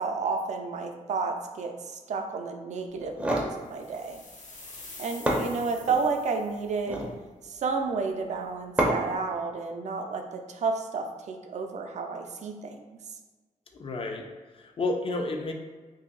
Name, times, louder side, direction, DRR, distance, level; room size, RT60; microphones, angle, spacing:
voice 1, 0.0-4.2 5.0-7.1 7.4-13.0, right 4 dB, 60° right, 4 dB, 0.4 m, -31 dB
sound 1, 3.0-3.5 4.8-4.9 5.3-6.0 6.7-7.2 8.8-9.2, right 1 dB, 10° right, 0.5 m, -28 dB
sound 2, 3.7-6.7, left 3 dB, 70° left, 0.8 m, -47 dB
voice 2, 13.7-14.3 14.5-15.5, left 2 dB, 45° left, 3 dB, 0.4 m, -31 dB
2.8 x 2.7 x 3.8 m, 1.3 s
wide cardioid pair, 145°, 13 cm